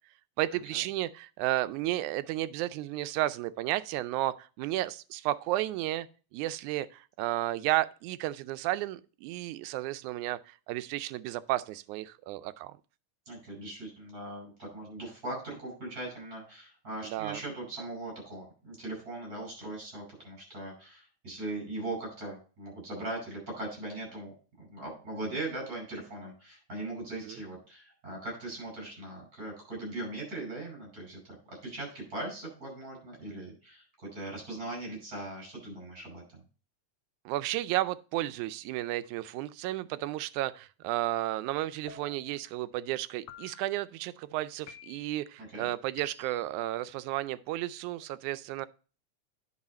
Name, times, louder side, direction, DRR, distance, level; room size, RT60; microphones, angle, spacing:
voice 1, 0.4-6.1 6.3-12.8 17.0-17.4 27.3-27.4 37.3-48.7, right 15 dB, 85° right, 2.0 m, -33 dB
voice 2, 13.3-33.9 34.1-36.4 45.4-45.7, right 2 dB, 30° right, 5.9 m, -40 dB
sound 1, 41.9-42.5 43.3-43.9 44.7-45.2 46.0-46.5, left 8 dB, 75° left, 2.0 m, -51 dB
9.7 x 5.6 x 4.2 m
omnidirectional pair, 3.4 m